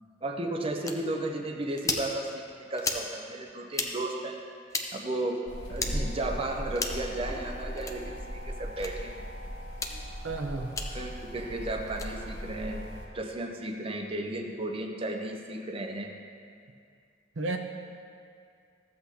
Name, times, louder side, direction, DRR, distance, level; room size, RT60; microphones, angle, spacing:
voice 1, 0.2-4.4 4.9-5.4 5.7-9.3 9.9-10.0 10.6-16.1, right 1 dB, 30° right, 2 dB, 0.6 m, -34 dB
sound 1, 0.8-1.0 1.8-2.1 2.8-3.0 3.7-3.9 4.7-4.9 5.7-5.9 6.7-7.0 7.8-8.0 8.8-8.9 9.7-9.9 10.7-10.9 11.9-12.1, left 3 dB, 15° left, 0.6 m, -32 dB
sound 2, 5.5-13.1, equal, 75° left, 1.8 m, -38 dB
voice 2, 10.2-10.7 17.4-17.6, right 3 dB, 80° right, 3 dB, 0.7 m, -32 dB
14.5 x 8.1 x 2.8 m, 2.3 s
head